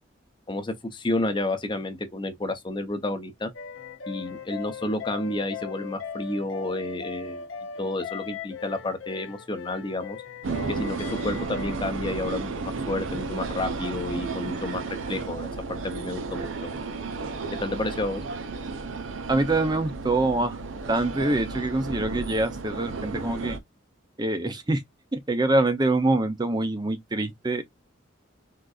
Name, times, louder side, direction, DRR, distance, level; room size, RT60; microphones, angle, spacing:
voice 1, 0.5-3.5 4.1-7.5 7.8-10.2 10.7-14.8 15.1-16.7 17.6-18.2, left 2 dB, 25° left, 0.6 m, -30 dB
sound 1, 3.5-11.8, left 6 dB, 70° left, 0.6 m, -39 dB
sound 2, 10.4-23.6, right 3 dB, 75° right, 0.6 m, -33 dB
voice 2, 19.3-20.6 20.9-23.6 24.2-24.8 25.1-27.6, right 2 dB, 20° right, 0.5 m, -25 dB
3.7 x 2.5 x 2.3 m
head